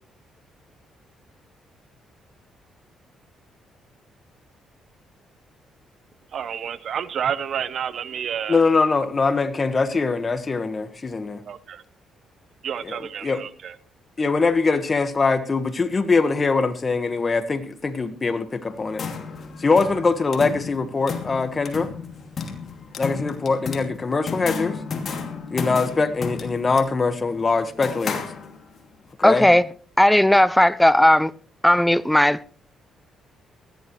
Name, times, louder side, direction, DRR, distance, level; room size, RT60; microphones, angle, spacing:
voice 1, 6.3-8.6 11.5-11.8 12.6-13.7, right 8 dB, 60° right, 1.0 m, -29 dB
voice 2, 8.5-11.4 12.8-13.0 13.2-13.4 14.2-19.1 19.6-21.9 23.0-24.8 25.5-28.3 29.2-29.5, left 4 dB, 30° left, 1.5 m, -22 dB
sound 1, 18.7-28.9, left 5 dB, 50° left, 2.7 m, -33 dB
voice 3, 29.2-29.6 30.0-31.3 31.6-32.5, left 1 dB, 5° left, 0.5 m, -16 dB
19.0 x 14.5 x 3.2 m
cardioid pair, 90°, 0 cm